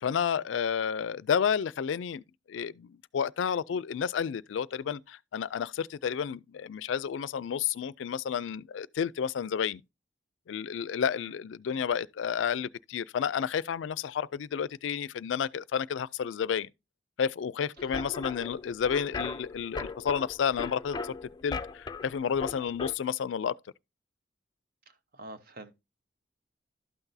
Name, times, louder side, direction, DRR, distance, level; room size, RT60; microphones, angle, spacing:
voice 1, 0.0-2.2 2.5-9.8 10.5-16.7 17.2-21.1 21.4-23.5, left 7 dB, 90° left, 0.4 m, -31 dB
sound 1, 17.8-22.9, left 3 dB, 25° left, 0.4 m, -38 dB
voice 2, 25.1-25.8, right 2 dB, 55° right, 0.9 m, -45 dB
12.0 x 5.9 x 2.7 m
head